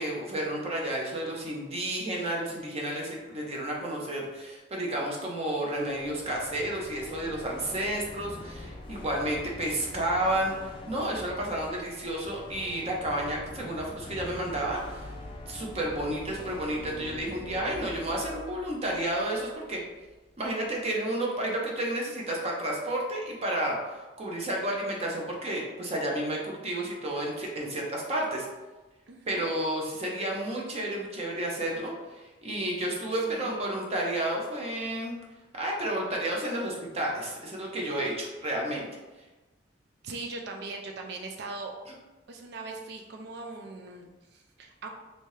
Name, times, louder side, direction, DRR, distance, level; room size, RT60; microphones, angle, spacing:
voice 1, 0.0-15.1 15.5-19.8 20.4-28.5 29.3-35.1 35.5-38.9, right 1 dB, 35° right, -2 dB, 0.7 m, -31 dB
sound 1, 5.8-19.8, left 1 dB, 30° left, 0.4 m, -44 dB
voice 2, 29.1-29.5 33.2-33.7 40.0-41.7 42.3-44.9, right 3 dB, 65° right, 2 dB, 0.4 m, -40 dB
3.3 x 2.7 x 3.1 m, 1.2 s
head